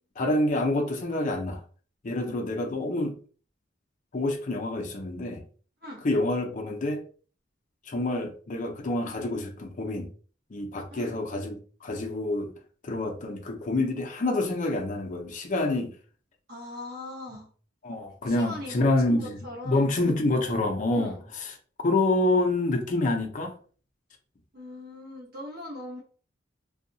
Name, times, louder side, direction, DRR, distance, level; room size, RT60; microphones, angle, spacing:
voice 1, 0.2-1.6 2.0-3.2 4.1-5.4 6.0-7.0 7.9-10.1 10.5-12.5 12.8-15.9 17.8-19.4 19.6-21.5 21.8-23.5, left 2 dB, 40° left, 0.5 m, -27 dB
voice 2, 16.5-17.5 18.2-20.1 20.9-21.2 24.5-26.0, left 1 dB, 55° right, 1.1 m, -40 dB
2.7 x 2.2 x 2.6 m
head